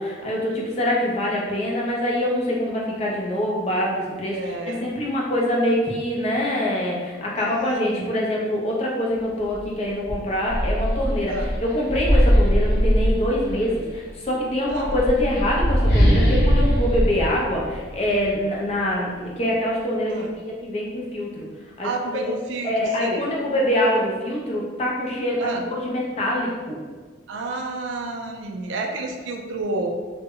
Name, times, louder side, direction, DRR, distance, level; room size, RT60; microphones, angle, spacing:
voice 1, 0.0-11.3 11.6-21.5 21.8-21.9 22.2-22.3 22.6-26.8, left 1 dB, 30° left, -3 dB, 0.4 m, -24 dB
voice 2, 4.3-4.9 7.8-8.1 11.3-11.5 14.7-14.9 20.1-20.3 21.8-23.3 25.4-25.7 27.3-29.9, right 3 dB, 75° right, 2 dB, 0.3 m, -30 dB
sound 1, 9.5-9.7 10.1-13.7 14.6-18.3, equal, 55° left, 1.0 m, -20 dB
2.0 x 2.0 x 3.6 m, 1.4 s
head